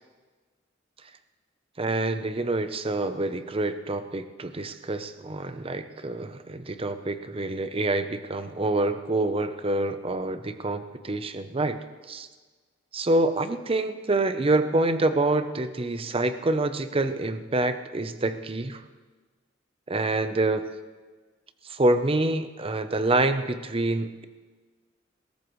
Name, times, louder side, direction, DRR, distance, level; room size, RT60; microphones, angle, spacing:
voice 1, 1.8-11.8 12.1-12.3 12.9-18.8 19.9-20.7 21.6-24.3, right 2 dB, 30° right, 10 dB, 0.7 m, -26 dB
20.5 x 17.5 x 3.2 m, 1.4 s
head